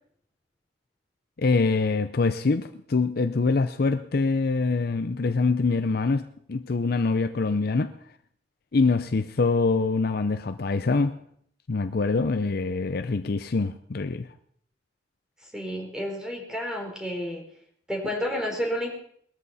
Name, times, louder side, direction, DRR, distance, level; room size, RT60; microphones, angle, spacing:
voice 1, 1.4-7.9 8.7-11.2 11.7-14.3, left 3 dB, 55° left, 0.6 m, -24 dB
voice 2, 15.5-17.4 17.9-18.9, equal, 5° right, 3.9 m, -30 dB
20.5 x 13.5 x 4.2 m
head